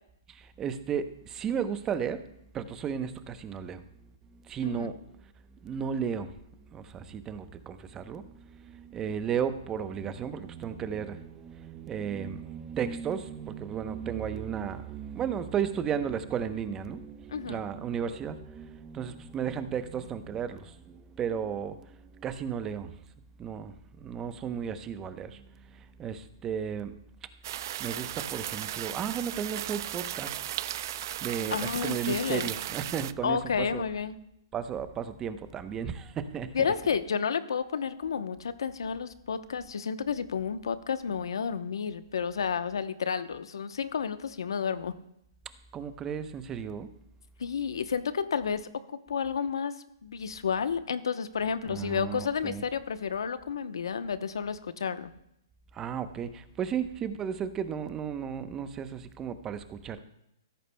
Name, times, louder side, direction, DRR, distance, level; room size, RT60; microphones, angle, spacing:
voice 1, 0.6-2.2 2.5-3.8 4.5-5.0 5.6-6.3 6.7-21.8 22.2-22.9 23.4-25.4 26.0-26.9 27.8-30.4 31.2-33.8 34.5-36.7 45.7-46.9 51.7-52.6 55.7-60.0, right 7 dB, 20° right, 11 dB, 0.8 m, -34 dB
voice 2, 17.3-17.6 31.5-32.5 33.2-34.2 36.5-44.9 47.4-49.8 50.0-55.1, left 6 dB, 80° left, 11 dB, 0.8 m, -31 dB
sound 1, 27.4-33.1, right 13 dB, 50° right, 0.4 m, -36 dB
16.0 x 13.5 x 2.2 m, 0.79 s
hypercardioid pair, 140°, 2 cm